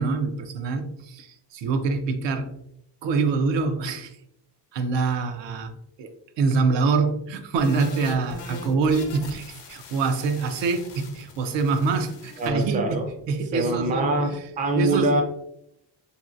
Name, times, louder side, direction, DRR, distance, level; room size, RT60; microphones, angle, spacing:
voice 1, 0.0-2.5 3.0-4.2 4.7-14.5 14.8-15.1, right 4 dB, 85° right, 0.5 m, -25 dB
sound 1, 7.6-12.5, left 4 dB, 80° left, 0.7 m, -42 dB
voice 2, 12.4-13.1 13.5-15.2, right 2 dB, 20° right, 0.3 m, -24 dB
3.0 x 2.8 x 2.4 m
cardioid pair, 145°, 43 cm